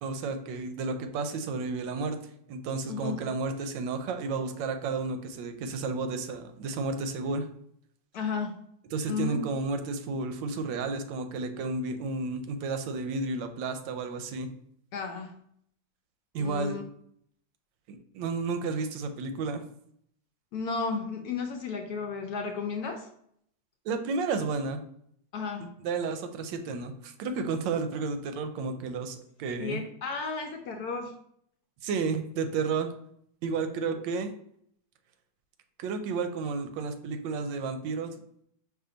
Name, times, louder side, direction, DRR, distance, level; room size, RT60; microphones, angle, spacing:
voice 1, 0.0-2.2 2.5-7.5 8.9-14.5 16.3-16.8 17.9-19.6 23.8-24.8 25.8-29.8 31.8-32.9 33.4-34.3 35.8-38.1, right 4 dB, 85° right, 7 dB, 1.3 m, -32 dB
voice 2, 2.9-3.2 8.1-8.5 9.1-9.4 14.9-15.3 16.4-16.8 20.5-23.1 25.3-25.7 29.6-31.1, left 5 dB, 70° left, 3 dB, 0.9 m, -33 dB
5.0 x 2.5 x 3.8 m, 0.68 s
omnidirectional pair, 2.0 m